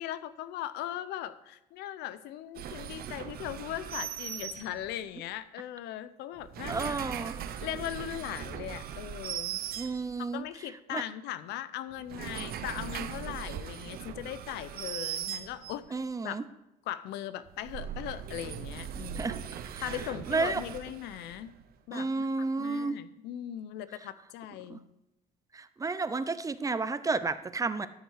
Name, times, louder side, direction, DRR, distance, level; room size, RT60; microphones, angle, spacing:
voice 1, 0.0-7.0 7.6-9.6 10.2-16.4 16.9-19.4 19.8-21.5 21.9-22.3 22.6-24.8, left 12 dB, 85° left, 14 dB, 0.6 m, -39 dB
sound 1, 2.5-5.1 6.3-10.4 11.9-15.9 17.5-21.6, right 9 dB, 65° right, 0.8 m, -39 dB
voice 2, 6.7-7.3 9.8-10.4 10.9-11.0 15.9-16.4 19.2-19.4 19.7-19.8 20.3-20.6 21.9-23.0 24.7-24.8 25.5-27.9, right 3 dB, 20° right, 13 dB, 0.6 m, -31 dB
13.0 x 6.4 x 4.8 m, 0.92 s
cardioid pair, 110°, 17 cm